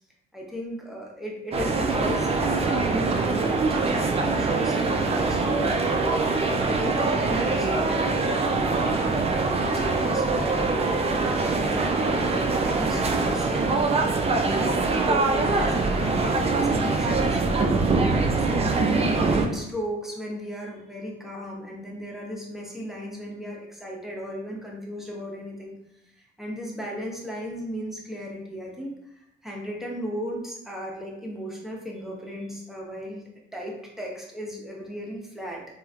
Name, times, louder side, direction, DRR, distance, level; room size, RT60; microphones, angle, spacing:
voice 1, 0.3-6.1 6.7-11.0 11.5-14.0 14.9-25.8 26.2-29.1 29.4-33.2 33.5-35.6, equal, ahead, -2 dB, 0.8 m, -35 dB
sound 1, 1.5-19.5, right 3 dB, 30° right, 0.4 m, -23 dB
3.1 x 2.4 x 2.4 m, 0.82 s
cardioid pair, 90°, 20 cm